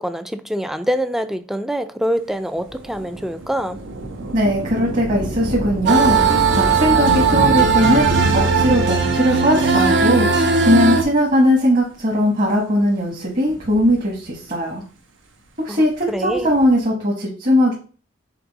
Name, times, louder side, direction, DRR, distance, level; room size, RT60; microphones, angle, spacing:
voice 1, 0.0-3.8 15.7-16.5, equal, ahead, 0.4 m, -25 dB
Thunder / Rain, 2.6-11.5 12.3-12.4 13.3-14.6 16.1-16.9, right 1 dB, 85° right, 1.1 m, -29 dB
voice 2, 4.3-6.3 6.6-14.8 15.6-17.7, equal, 45° right, 1.3 m, -19 dB
sound 1, 5.9-11.0, right 4 dB, 65° right, 0.8 m, -17 dB
6.0 x 3.9 x 4.0 m
head